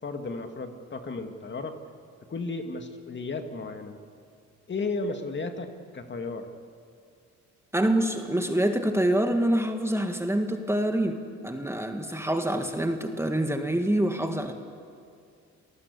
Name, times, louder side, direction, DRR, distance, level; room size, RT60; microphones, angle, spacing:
voice 1, 0.0-1.8 2.3-4.0 4.7-6.5, left 3 dB, 40° left, 6 dB, 2.1 m, -34 dB
voice 2, 7.7-14.5, right 1 dB, 10° right, 5 dB, 1.9 m, -26 dB
28.0 x 19.0 x 8.4 m, 2.3 s
cardioid pair, 90°, 30 cm